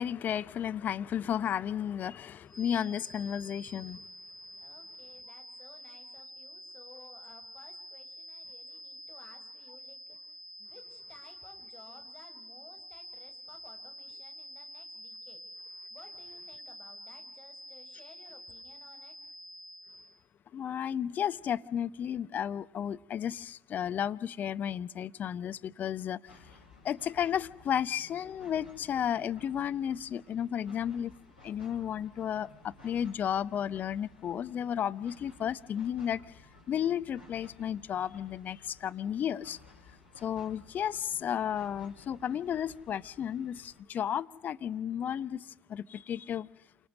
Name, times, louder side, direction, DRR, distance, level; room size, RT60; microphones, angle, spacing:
voice 1, 0.0-4.0 20.5-26.2 26.8-31.1 31.4-36.2 36.7-39.6 40.2-45.4 45.7-46.5, left 9 dB, 40° left, 0.9 m, -33 dB
sound 1, 2.5-20.2, equal, ahead, 3.6 m, -48 dB
voice 2, 4.6-15.4 15.9-19.1, left 3 dB, 20° left, 6.6 m, -57 dB
sound 2, 26.3-43.8, left 3 dB, 85° left, 5.8 m, -57 dB
28.5 x 25.0 x 6.3 m
figure-of-eight pair, 60°, 5 cm